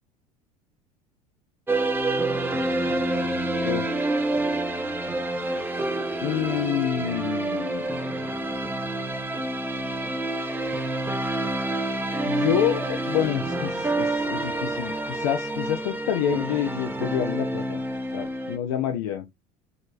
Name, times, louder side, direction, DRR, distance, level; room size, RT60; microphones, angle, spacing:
sound 1, 1.7-18.6, right 2 dB, 10° right, 0.8 m, -28 dB
voice 1, 6.2-8.0 12.3-17.8 18.1-19.3, left 10 dB, 60° left, 0.6 m, -28 dB
5.0 x 3.2 x 2.5 m
figure-of-eight pair, 70°, 20 cm